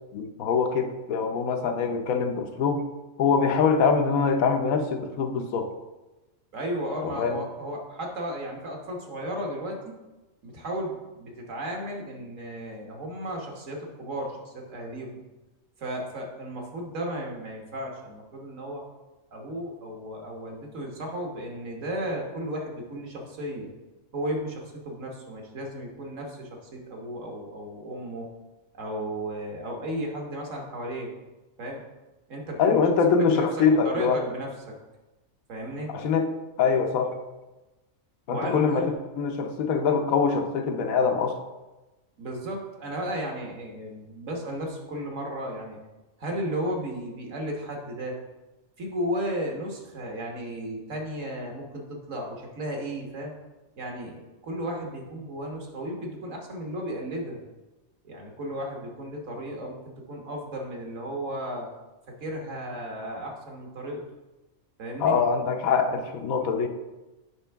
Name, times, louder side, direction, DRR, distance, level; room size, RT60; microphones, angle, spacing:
voice 1, 0.1-2.9 3.2-5.7 7.0-7.4 32.6-34.2 35.9-36.3 36.6-37.2 38.3-41.4 65.0-66.7, left 5 dB, 85° left, 6 dB, 1.2 m, -24 dB
voice 2, 6.5-9.9 10.4-15.2 15.8-18.8 19.3-23.7 24.1-28.3 28.7-31.1 31.6-31.8 32.3-32.7 33.2-33.5 33.8-34.8 35.5-35.9 38.3-38.9 42.2-45.8 46.2-48.2 48.8-53.3 53.8-57.4 58.0-61.7 62.1-64.0 64.8-65.2, right 1 dB, 65° right, 1 dB, 1.6 m, -34 dB
8.2 x 5.2 x 3.4 m, 1.1 s
omnidirectional pair, 1.4 m